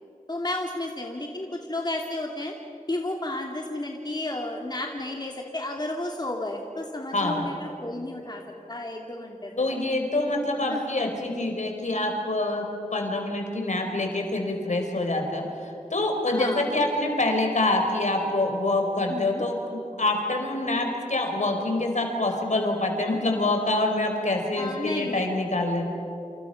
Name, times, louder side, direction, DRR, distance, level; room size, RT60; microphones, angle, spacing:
voice 1, 0.3-2.5 2.9-8.4 8.7-9.8 10.7-10.8 11.4-11.5 16.3-16.7 19.1-19.4 24.6-25.3, left 1 dB, 30° left, 1 dB, 2.7 m, -32 dB
voice 2, 7.1-7.5 9.6-15.5 15.9-25.9, left 2 dB, 65° left, 3 dB, 4.6 m, -26 dB
28.5 x 27.5 x 5.9 m, 2.9 s
cardioid pair, 40°, 13 cm